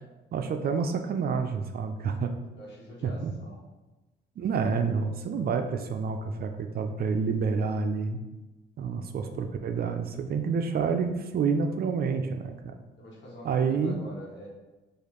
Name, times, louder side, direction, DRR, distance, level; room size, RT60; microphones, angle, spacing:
voice 1, 0.3-2.3 3.0-3.3 4.4-8.2 8.8-12.7 13.4-14.0, right 5 dB, 50° right, 6 dB, 0.4 m, -28 dB
voice 2, 2.5-3.6 13.0-14.5, equal, 60° left, -3 dB, 1.3 m, -45 dB
4.8 x 2.5 x 3.0 m, 1.1 s
cardioid pair, 90°, 20 cm